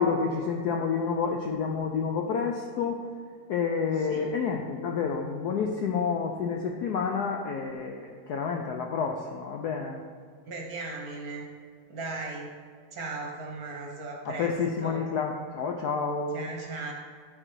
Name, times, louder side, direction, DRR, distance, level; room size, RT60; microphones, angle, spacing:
voice 1, 0.0-3.0 3.5-10.0 14.3-16.5, left 5 dB, 75° left, 2 dB, 0.9 m, -29 dB
voice 2, 10.4-11.5 11.9-12.6 12.9-14.5 14.8-15.1 16.3-16.9, right 3 dB, 55° right, 0 dB, 1.2 m, -37 dB
9.6 x 4.5 x 4.6 m, 2.1 s
omnidirectional pair, 2.3 m